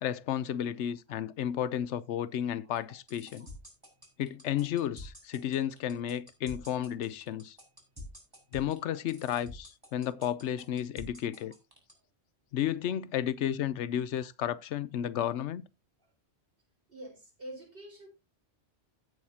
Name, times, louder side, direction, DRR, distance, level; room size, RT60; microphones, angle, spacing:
voice 1, 0.0-3.5 4.2-7.6 8.5-11.5 12.5-15.6, left 10 dB, 85° left, 1.0 m, -32 dB
sound 1, 2.8-11.9, left 1 dB, 20° right, 3.8 m, -47 dB
voice 2, 16.9-18.1, right 1 dB, 55° right, 4.4 m, -47 dB
16.0 x 6.4 x 2.8 m
omnidirectional pair, 1.1 m